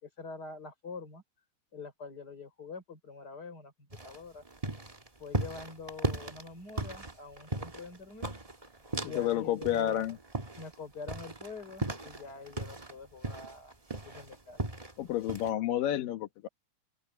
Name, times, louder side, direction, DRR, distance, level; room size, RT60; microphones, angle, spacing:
voice 1, 0.0-1.2 1.7-4.4 5.2-8.3 8.6-8.8 9.0-10.1 10.6-13.7 14.0-14.6, left 4 dB, 25° left, 4.9 m, -45 dB
sound 1, 3.9-9.3 9.6-12.9 13.2-14.9 15.3-15.5, right 2 dB, 30° right, 0.6 m, -37 dB
voice 2, 9.0-10.2 15.0-16.5, left 12 dB, 75° left, 3.0 m, -30 dB
omnidirectional pair, 4.0 m